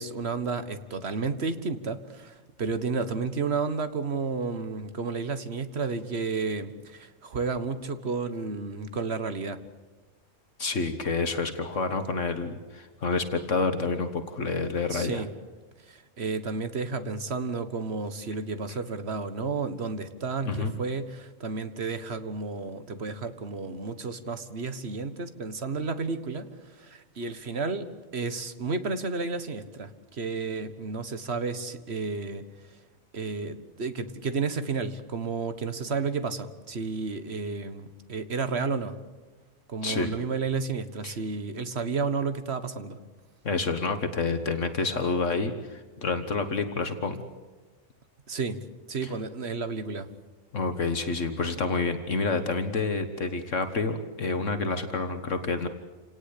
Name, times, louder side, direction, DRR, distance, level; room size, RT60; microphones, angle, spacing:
voice 1, 0.0-9.6 14.9-15.3 15.9-26.5 26.8-32.4 33.1-39.0 39.7-43.0 48.3-48.6 48.9-50.1, right 4 dB, 50° right, 11 dB, 1.7 m, -32 dB
voice 2, 10.6-15.2 20.5-20.7 39.8-40.1 41.0-41.1 43.4-47.3 49.0-49.1 50.5-55.7, left 3 dB, 65° left, 8 dB, 1.8 m, -28 dB
28.0 x 18.5 x 8.5 m, 1.3 s
omnidirectional pair, 1.4 m